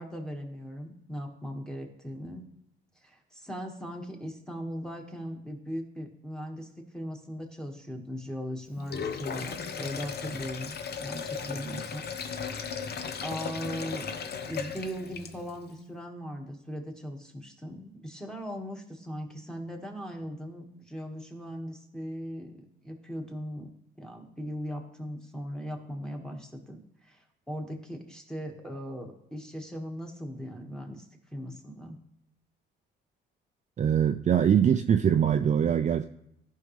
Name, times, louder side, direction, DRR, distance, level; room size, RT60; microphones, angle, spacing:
voice 1, 0.0-2.4 3.0-12.1 13.2-14.1 14.5-32.0, equal, 5° left, 1.6 m, -39 dB
Sink (filling or washing), 8.8-15.6, left 6 dB, 55° left, 0.8 m, -36 dB
voice 2, 33.8-36.1, right 8 dB, 40° right, 0.4 m, -23 dB
14.0 x 5.4 x 3.2 m
cardioid pair, 90°, 20 cm